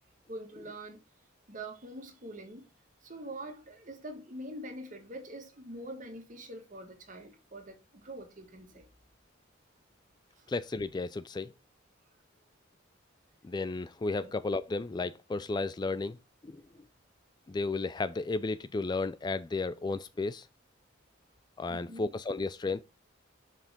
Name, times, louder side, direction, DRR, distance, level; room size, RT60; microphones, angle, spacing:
voice 1, 0.3-1.0 1.5-2.7 3.0-8.9 10.3-10.5 14.2-14.3 21.7-22.1, right 1 dB, 40° right, 1.8 m, -44 dB
voice 2, 10.5-11.5 13.4-16.2 16.4-16.6 17.5-20.5 21.6-22.8, left 3 dB, 20° left, 0.3 m, -33 dB
7.0 x 5.8 x 3.6 m
head